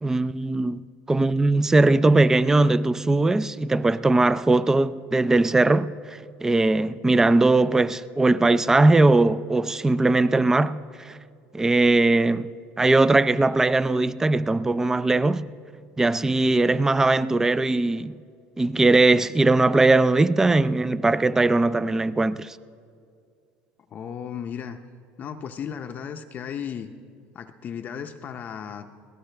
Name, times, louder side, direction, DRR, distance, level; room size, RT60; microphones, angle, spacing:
voice 1, 0.0-0.8 1.1-11.2 11.5-12.5 12.8-15.5 16.0-18.2 18.6-22.6, right 2 dB, 10° right, 0.3 m, -20 dB
voice 2, 23.9-24.8 25.2-26.9 27.3-28.9, left 8 dB, 40° left, 0.6 m, -35 dB
23.0 x 17.0 x 3.3 m
cardioid pair, 125°, 4 cm